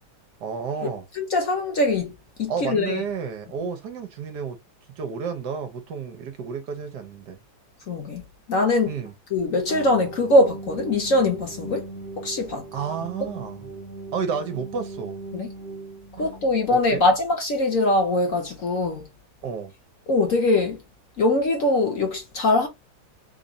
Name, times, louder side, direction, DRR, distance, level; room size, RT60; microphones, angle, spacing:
voice 1, 0.4-1.1 2.5-4.6 5.0-7.4 8.9-9.1 12.7-13.6 14.1-15.2 16.2-16.3 16.9-17.0 19.4-19.7, right 6 dB, 65° right, 1.2 m, -31 dB
voice 2, 1.2-3.0 7.9-8.2 8.5-8.9 9.3-11.9 12.2-12.7 15.3-15.5 16.2-19.1 20.1-20.8 21.2-22.7, left 2 dB, 50° left, 1.1 m, -22 dB
sound 1, 9.7-16.8, right 3 dB, 40° right, 0.9 m, -39 dB
3.6 x 2.5 x 3.9 m
omnidirectional pair, 2.1 m